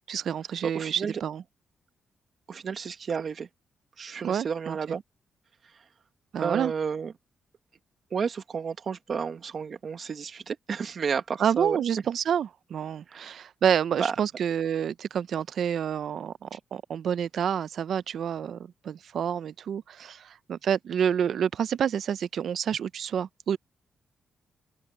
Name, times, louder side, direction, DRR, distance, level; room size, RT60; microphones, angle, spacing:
voice 1, 0.1-1.4 4.2-4.8 6.3-6.7 11.4-23.6, right 8 dB, 70° right, 0.6 m, -28 dB
voice 2, 0.6-1.2 2.5-3.5 4.0-5.0 5.6-5.9 6.4-7.1 8.1-11.8 13.1-13.4 14.0-14.1, right 6 dB, 55° right, 1.4 m, -32 dB
open air
cardioid pair, 70°, 0 cm